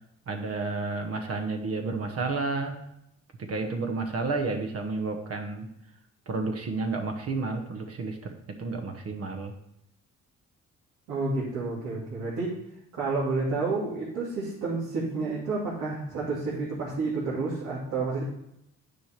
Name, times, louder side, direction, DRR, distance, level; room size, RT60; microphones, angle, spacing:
voice 1, 0.3-2.8 3.4-5.7 6.3-8.3 8.6-9.5, right 3 dB, 50° right, 4 dB, 1.2 m, -31 dB
voice 2, 11.1-12.5 12.9-18.2, right 3 dB, 85° right, -8 dB, 2.6 m, -30 dB
9.2 x 5.1 x 4.5 m, 0.81 s
cardioid pair, 90°, 30 cm